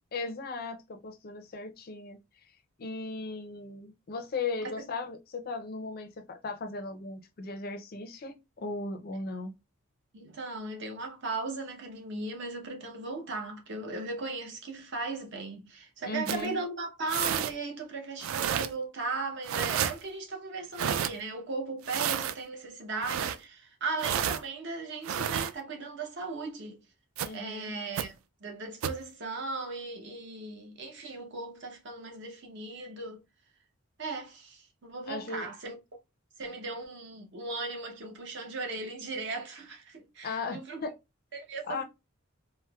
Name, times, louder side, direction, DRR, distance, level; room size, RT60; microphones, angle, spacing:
voice 1, 0.1-2.2 2.8-9.5 16.1-16.6 27.2-27.7 35.1-35.5 40.2-40.9 41.6-41.8, left 3 dB, 45° left, 0.4 m, -37 dB
voice 2, 10.1-26.8 27.3-28.1 28.4-33.2 34.0-35.8 36.4-40.9 41.3-41.8, right 3 dB, 55° right, 0.7 m, -37 dB
sound 1, 16.3-16.5 17.1-17.5 18.2-18.7 19.4-19.9 20.8-21.1 21.8-22.3 23.0-23.4 24.0-24.4 25.0-25.5 27.2-27.3 28.0-28.1 28.8-29.0, right 9 dB, 70° right, 0.3 m, -30 dB
4.2 x 2.0 x 2.2 m
head